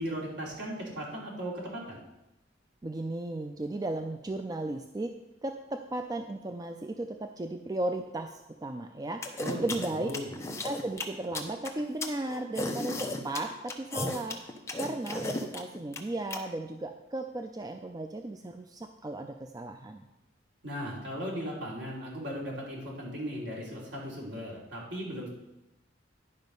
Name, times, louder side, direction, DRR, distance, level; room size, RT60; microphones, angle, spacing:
voice 1, 0.0-2.0 9.4-10.3 20.6-25.3, equal, 65° right, -4 dB, 3.0 m, -37 dB
voice 2, 2.8-5.1 5.4-10.1 10.6-14.4 14.8-20.0, right 2 dB, 20° right, 6 dB, 0.4 m, -35 dB
sound 1, 9.2-16.4, left 2 dB, 15° left, 0.8 m, -34 dB
11.0 x 5.2 x 5.3 m, 0.93 s
head